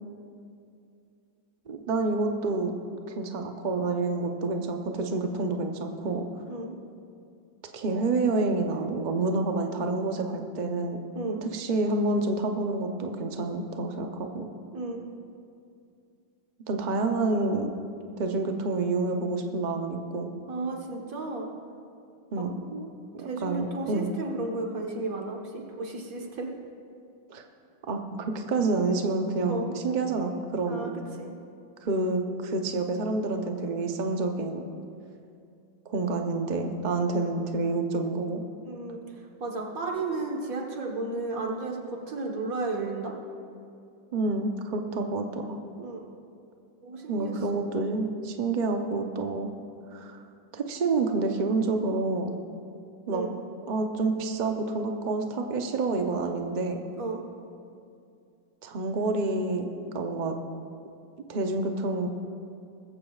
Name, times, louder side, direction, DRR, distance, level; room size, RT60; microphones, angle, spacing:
voice 1, 1.7-2.7 3.1-6.3 7.7-11.0 11.3-14.5 16.7-17.7 18.2-20.3 22.3-22.9 23.1-24.1 27.3-27.4 27.9-28.0 28.3-30.9 31.8-34.7 35.9-38.4 44.1-45.6 47.1-49.5 49.9-50.2 50.5-52.4 53.1-53.2 53.7-56.8 58.6-59.7 59.9-60.4 61.3-62.1, right 3 dB, 80° right, 4 dB, 0.4 m, -28 dB
voice 2, 6.5-6.8 11.2-11.4 14.7-15.0 20.5-21.5 23.2-26.5 29.5-29.7 30.7-30.9 31.2-31.3 38.6-43.1 45.8-46.1 46.8-47.6 53.1-53.3 57.0-57.2, right 3 dB, 50° right, 0 dB, 1.6 m, -33 dB
20.0 x 14.5 x 2.4 m, 2.5 s
omnidirectional pair, 2.1 m